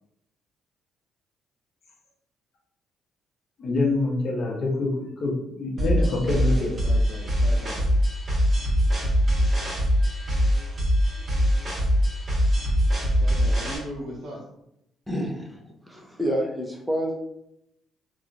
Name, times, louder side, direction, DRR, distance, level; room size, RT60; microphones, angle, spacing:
voice 1, 3.6-6.7, left 2 dB, 60° left, -1 dB, 0.8 m, -26 dB
sound 1, 5.8-13.8, equal, 40° right, 1.4 m, -22 dB
voice 2, 5.8-7.9 13.2-14.4, equal, 60° right, -2 dB, 1.0 m, -38 dB
voice 3, 15.1-17.2, equal, 5° right, 0 dB, 0.7 m, -29 dB
3.0 x 2.3 x 2.5 m, 0.80 s
cardioid pair, 80°, 0 cm